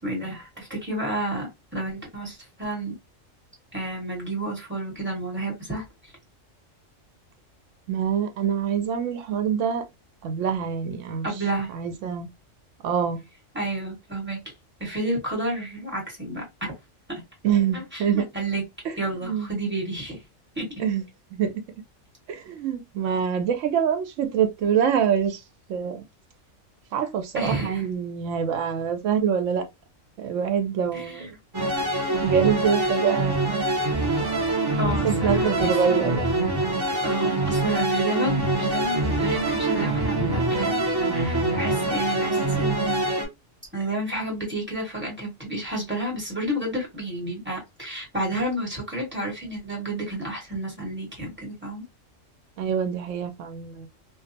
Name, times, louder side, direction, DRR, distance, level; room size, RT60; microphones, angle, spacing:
voice 1, 0.0-3.0 3.7-6.1 11.2-11.7 13.5-14.4 14.8-16.7 17.1-17.2 17.7-18.6 19.0-20.2 20.5-20.7 27.3-27.9 30.9-31.3 34.8-36.3 37.0-40.8 41.1-43.1 43.7-51.8, right 1 dB, 10° right, 1.2 m, -30 dB
voice 2, 7.9-9.8 10.2-11.3 11.7-12.3 12.8-13.2 17.4-18.3 18.8-19.0 19.2-19.5 20.8-21.0 21.3-21.5 22.3-25.4 25.7-26.0 26.9-29.7 30.2-31.8 32.2-33.6 34.9-36.5 52.6-53.9, right 8 dB, 75° right, 0.9 m, -25 dB
sound 1, 31.5-43.2, right 2 dB, 25° right, 0.5 m, -24 dB
2.3 x 2.2 x 2.5 m
omnidirectional pair, 1.3 m